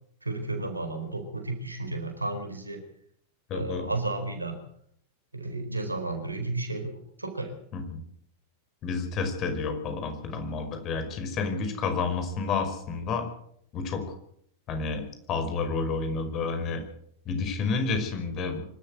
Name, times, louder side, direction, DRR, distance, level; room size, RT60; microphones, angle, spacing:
voice 1, 0.2-2.8 3.5-4.6 5.4-6.9 7.2-7.5, right 2 dB, 80° right, 6 dB, 4.4 m, -32 dB
voice 2, 3.5-3.9 7.7-8.0 8.8-13.2 13.7-14.0 14.7-16.8 17.3-18.6, left 4 dB, 35° left, 6 dB, 5.3 m, -30 dB
25.0 x 13.5 x 8.0 m, 0.69 s
figure-of-eight pair, 90°, 0 cm